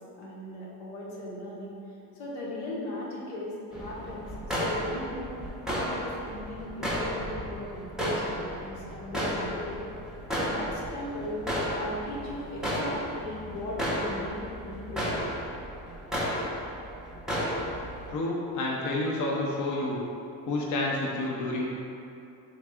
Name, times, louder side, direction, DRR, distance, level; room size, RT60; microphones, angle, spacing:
voice 1, 0.2-1.8 2.1-9.8 10.3-11.4 11.7-15.1, left 1 dB, 80° left, -5 dB, 1.0 m, -38 dB
sound 1, 3.7-18.1, equal, ahead, 0.6 m, -33 dB
voice 2, 18.1-20.0 20.5-21.7, left 2 dB, 40° left, -3 dB, 0.6 m, -29 dB
3.4 x 2.3 x 3.5 m, 2.6 s
supercardioid pair, 80°, 46 cm